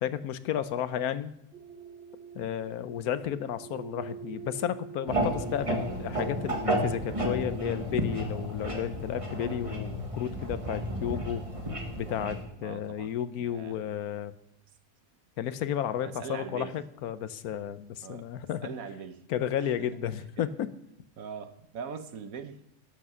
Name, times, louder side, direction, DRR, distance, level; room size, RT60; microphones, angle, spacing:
voice 1, 0.0-1.3 2.3-11.4 11.9-14.3 15.4-18.7 19.3-20.7, left 10 dB, 70° left, 13 dB, 1.2 m, -32 dB
sound 1, 1.5-7.9, right 8 dB, 40° right, 1.1 m, -46 dB
sound 2, 5.1-12.4, right 1 dB, 20° right, 1.7 m, -32 dB
voice 2, 12.6-13.8 16.0-16.7 18.0-18.3 18.6-19.2 19.6-19.9 20.4-20.5 21.2-22.7, right 6 dB, 65° right, 10 dB, 1.2 m, -41 dB
12.0 x 8.1 x 6.1 m, 0.80 s
omnidirectional pair, 1.7 m